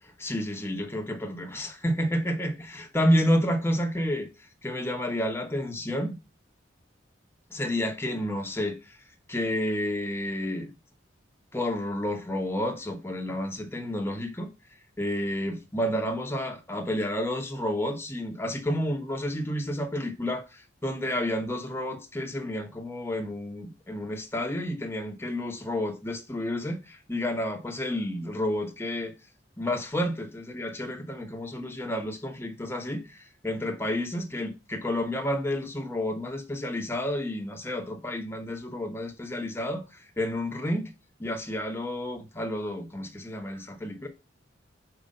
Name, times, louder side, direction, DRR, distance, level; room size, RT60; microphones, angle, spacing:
voice 1, 0.2-4.3 4.6-6.2 7.5-8.9 9.3-10.7 11.5-14.5 15.0-29.1 29.6-40.9 41.2-44.1, left 1 dB, 15° left, 1.0 m, -30 dB
5.1 x 4.9 x 5.3 m
head